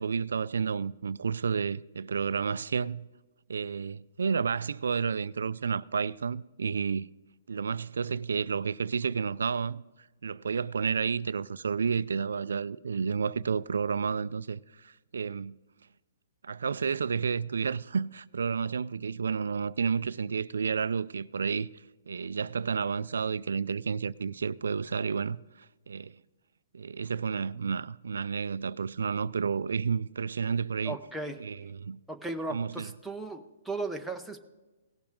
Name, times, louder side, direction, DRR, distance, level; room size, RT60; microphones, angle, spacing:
voice 1, 0.0-3.1 3.5-7.1 7.5-9.8 10.2-15.6 16.4-21.7 22.1-26.2 26.7-31.0 31.4-32.0 32.5-32.9, right 6 dB, 90° right, 0.3 m, -31 dB
voice 2, 30.8-31.4 32.1-34.4, right 2 dB, ahead, 0.8 m, -36 dB
18.0 x 7.1 x 3.7 m
hypercardioid pair, 155°, 0 cm